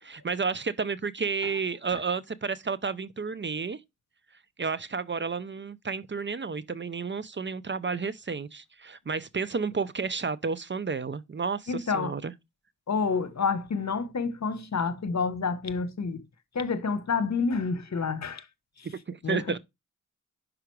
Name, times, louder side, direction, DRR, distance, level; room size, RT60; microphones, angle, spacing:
voice 1, 0.0-3.8 4.6-12.3 18.8-19.6, right 5 dB, 35° right, 0.6 m, -31 dB
voice 2, 11.7-12.2 12.9-16.2 16.5-18.4 18.8-18.9 19.2-19.6, left 5 dB, 60° left, 1.0 m, -29 dB
5.8 x 5.0 x 4.6 m
cardioid pair, 50°, 31 cm